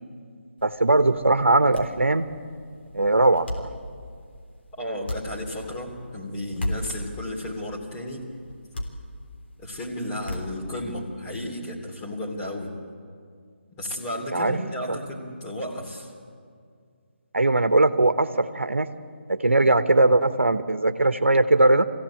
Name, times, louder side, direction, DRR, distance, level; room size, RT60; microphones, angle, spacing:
sound 1, 0.6-11.1, left 1 dB, 60° left, 3.5 m, -37 dB
voice 1, 0.6-2.3 2.9-3.7 14.3-14.6 14.9-15.0 17.3-18.9 19.3-21.8, right 2 dB, 85° right, 10 dB, 1.1 m, -20 dB
voice 2, 4.8-8.2 9.6-12.7 13.8-16.1, left 1 dB, 20° left, -3 dB, 3.1 m, -33 dB
23.0 x 16.0 x 8.6 m, 2.2 s
figure-of-eight pair, 155°, 7 cm